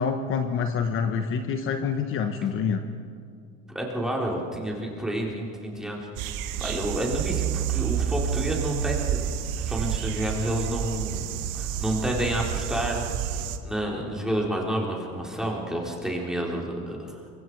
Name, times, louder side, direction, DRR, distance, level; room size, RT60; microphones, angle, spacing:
voice 1, 0.0-2.8, left 6 dB, 45° left, 6 dB, 1.2 m, -26 dB
voice 2, 3.7-6.1 6.6-9.2 9.5-13.3 13.6-17.2, right 1 dB, ahead, -2 dB, 3.7 m, -29 dB
sound 1, 6.2-13.6, right 9 dB, 85° right, 1.6 m, -29 dB
28.5 x 24.5 x 4.7 m, 2.4 s
cardioid pair, 150°, 30 cm